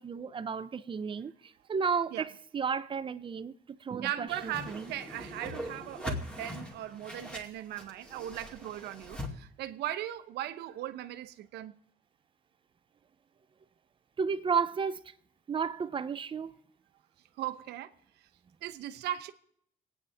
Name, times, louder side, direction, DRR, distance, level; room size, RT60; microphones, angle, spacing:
voice 1, 0.0-3.5 3.8-4.9 14.2-15.0 15.5-16.5, right 6 dB, 30° right, 0.7 m, -33 dB
voice 2, 4.0-11.7 17.4-17.9 18.2-18.3 18.6-19.3, right 12 dB, 80° right, 0.9 m, -38 dB
Whoosh swoosh swish, 4.3-9.3, left 1 dB, 5° left, 2.4 m, -41 dB
26.5 x 9.4 x 3.5 m
cardioid pair, 110°, 17 cm